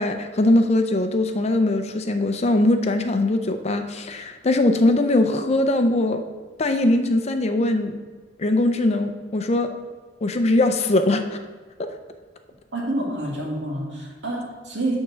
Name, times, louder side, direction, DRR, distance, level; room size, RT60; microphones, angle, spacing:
voice 1, 0.0-6.2 6.6-8.0 8.4-9.7 10.2-11.4 11.8-11.9, left 2 dB, 35° left, 7 dB, 0.5 m, -21 dB
voice 2, 12.7-15.0, right 1 dB, 65° right, -3 dB, 2.1 m, -28 dB
9.3 x 3.7 x 6.1 m, 1.4 s
head